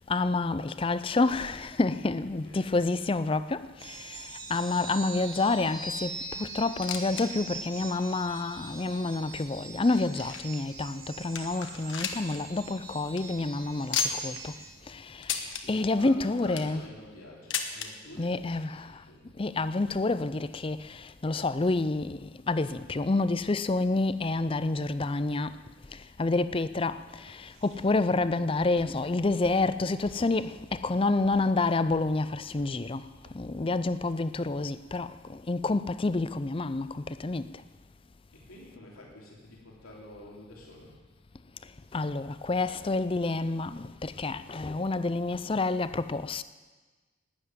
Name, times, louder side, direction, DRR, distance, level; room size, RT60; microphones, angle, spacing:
voice 1, 0.1-14.5 14.9-16.8 18.2-19.0 19.4-25.6 25.9-33.0 33.3-37.5 41.9-46.4, left 3 dB, 25° left, 0.4 m, -29 dB
voice 2, 2.2-2.8 15.6-19.3 38.3-41.0, left 1 dB, 90° left, 3.3 m, -48 dB
sound 1, 3.8-14.7, right 3 dB, 45° right, 2.0 m, -43 dB
sound 2, 6.8-7.3 7.6-7.7 8.3-8.4 9.1-10.6 11.0-11.1 11.4-12.4 12.7-12.8 13.0-13.2 13.9-14.4 15.2-15.6 16.3-16.8 17.5-17.9 18.9-19.0 19.2-19.3 20.1-20.2, left 6 dB, 60° left, 1.3 m, -33 dB
Walk footsteps, 27.1-34.0, equal, 65° right, 3.6 m, -54 dB
12.0 x 9.8 x 9.6 m
head